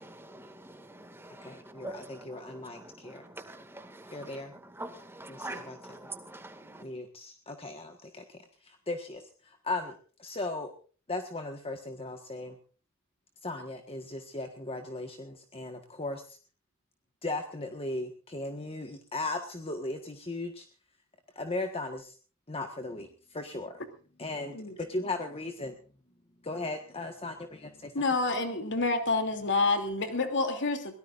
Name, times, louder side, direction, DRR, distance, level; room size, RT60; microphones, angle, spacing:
voice 1, 0.0-6.8, right 2 dB, 10° right, 2.1 m, -45 dB
voice 2, 1.4-3.2 4.1-4.5 5.3-5.8 6.8-8.4 8.6-10.7 11.1-12.6 13.4-16.2 17.2-20.6 21.3-22.1 22.5-23.8 24.2-25.7 26.4-27.9, left 2 dB, 25° left, 1.5 m, -37 dB
voice 3, 27.9-31.0, left 3 dB, 55° left, 2.9 m, -28 dB
23.0 x 18.0 x 2.6 m
head